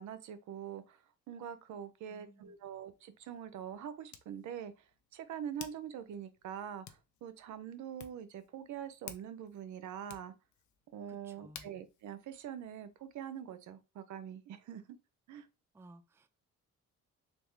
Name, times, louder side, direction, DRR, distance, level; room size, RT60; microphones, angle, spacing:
voice 1, 0.0-4.7 5.1-10.3 10.9-15.0 15.3-15.5, right 9 dB, 75° right, 0.6 m, -44 dB
voice 2, 2.0-2.6 11.1-11.7 15.7-16.3, right 2 dB, 10° right, 0.3 m, -58 dB
Hands, 2.5-13.3, left 9 dB, 75° left, 0.6 m, -56 dB
3.4 x 2.3 x 3.2 m
cardioid pair, 90°, 30 cm